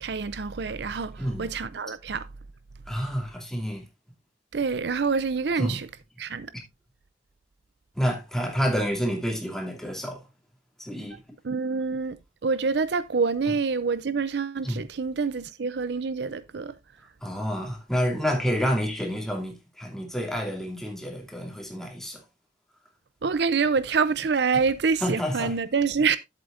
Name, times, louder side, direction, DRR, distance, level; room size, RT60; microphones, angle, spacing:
voice 1, 0.0-2.3 4.5-5.9 6.2-6.5 11.4-12.2 12.4-16.7 23.2-26.2, right 5 dB, 65° right, 0.5 m, -26 dB
voice 2, 1.2-1.5 2.9-3.9 5.5-5.8 6.5-6.6 7.9-10.2 10.8-11.2 13.4-13.5 14.6-14.8 17.2-22.2 25.0-25.6, equal, 5° left, 2.5 m, -29 dB
11.0 x 8.1 x 2.5 m
head